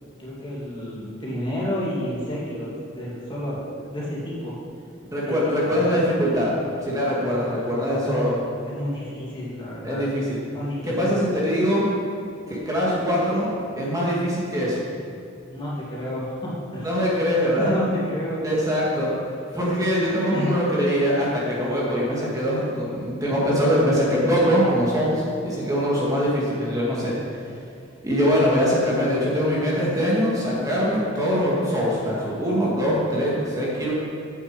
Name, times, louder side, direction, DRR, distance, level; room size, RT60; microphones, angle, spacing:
voice 1, 0.2-4.5 5.2-5.8 8.0-8.2 8.7-10.1 10.5-11.2 15.5-16.9 17.6-18.4 20.1-20.5, equal, 25° left, -7 dB, 2.5 m, -30 dB
voice 2, 5.0-6.5 6.8-8.3 9.8-10.4 10.8-11.9 12.5-14.8 16.8-17.8 18.4-19.1 19.5-27.1 28.0-33.9, equal, 15° right, -6 dB, 2.0 m, -23 dB
9.0 x 7.0 x 8.0 m, 2.6 s
head